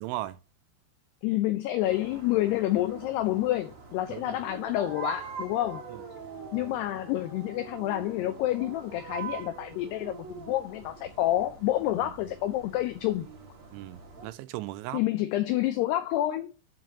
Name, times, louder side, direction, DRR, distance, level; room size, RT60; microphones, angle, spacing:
voice 1, 0.0-0.4 4.1-4.4 5.9-6.0 13.7-15.0, right 16 dB, 80° right, 2.9 m, -37 dB
voice 2, 1.2-5.9 6.5-13.3 14.9-16.5, left 14 dB, 85° left, 2.3 m, -28 dB
sound 1, 1.8-14.3, right 6 dB, 45° right, 1.9 m, -44 dB
9.7 x 4.6 x 7.2 m
omnidirectional pair, 5.6 m